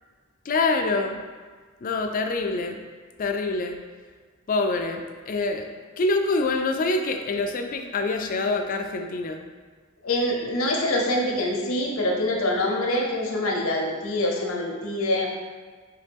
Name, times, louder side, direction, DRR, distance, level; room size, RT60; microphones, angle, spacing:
voice 1, 0.5-1.2 1.8-2.8 3.2-3.8 4.5-5.7 6.0-9.4, left 3 dB, 40° left, 5 dB, 0.3 m, -25 dB
voice 2, 10.0-15.3, left 1 dB, 70° left, 0 dB, 0.7 m, -25 dB
4.1 x 3.8 x 3.4 m, 1.5 s
head